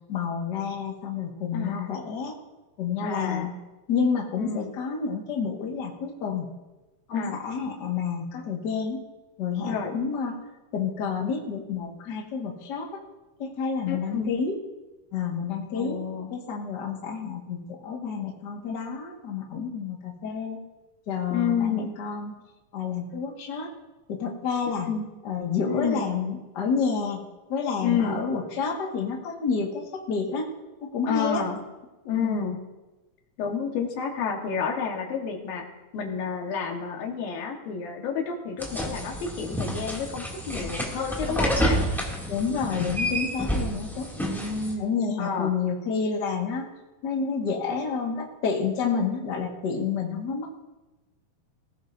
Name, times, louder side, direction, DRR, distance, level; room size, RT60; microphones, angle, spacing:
voice 1, 0.1-2.3 2.8-3.5 3.9-6.5 7.1-9.0 9.4-10.4 10.7-13.0 13.4-14.6 15.1-16.0 16.3-20.6 21.1-22.4 22.7-23.7 24.1-24.9 25.2-27.2 27.5-30.5 30.9-31.4 32.2-32.4 42.3-44.1 44.8-46.7 47.0-50.6, left 5 dB, 40° left, -1 dB, 1.8 m, -29 dB
voice 2, 1.5-1.9 3.0-3.5 4.4-4.8 7.1-7.4 9.6-9.9 13.9-14.3 15.7-16.3 21.3-21.9 24.8-25.1 25.7-26.1 27.8-28.2 31.1-31.6 32.0-32.6 33.4-35.7 35.9-41.8 44.2-44.9 45.2-45.5, left 6 dB, 85° left, 2 dB, 3.3 m, -30 dB
sound 1, 38.6-44.7, equal, ahead, 1.8 m, -29 dB
19.0 x 16.5 x 2.7 m, 1.1 s
omnidirectional pair, 4.0 m